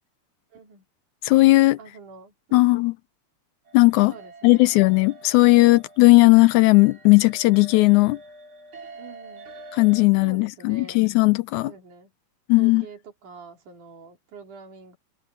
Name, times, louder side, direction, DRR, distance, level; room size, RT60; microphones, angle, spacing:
voice 1, 0.5-0.8 1.8-2.9 4.1-4.7 8.9-9.5 10.2-11.1 11.6-12.1 12.6-15.0, right 4 dB, 75° right, 5.0 m, -45 dB
voice 2, 1.2-1.8 2.5-2.9 3.7-4.1 4.4-8.2 9.7-11.7 12.5-12.9, left 21 dB, 80° left, 2.0 m, -17 dB
sound 1, 3.7-10.1, right 2 dB, 40° right, 3.0 m, -46 dB
omnidirectional pair, 3.6 m